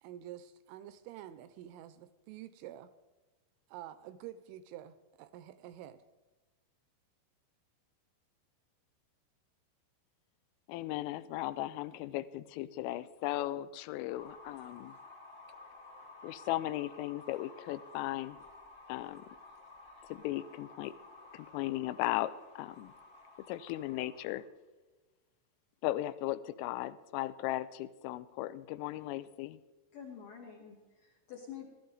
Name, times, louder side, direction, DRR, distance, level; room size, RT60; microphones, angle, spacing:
voice 1, 0.0-2.9 3.7-6.0, right 12 dB, 85° right, 13 dB, 2.9 m, -48 dB
voice 2, 10.7-14.9 16.2-18.4 18.9-19.3 20.1-20.9 21.3-22.9 23.5-24.4 25.8-29.6, left 15 dB, 85° left, 14 dB, 3.1 m, -37 dB
sound 1, 14.1-24.4, left 3 dB, 30° left, 1.3 m, -54 dB
voice 3, 29.9-31.7, left 8 dB, 70° left, 0 dB, 2.1 m, -48 dB
16.5 x 12.5 x 3.9 m, 1.2 s
omnidirectional pair, 5.8 m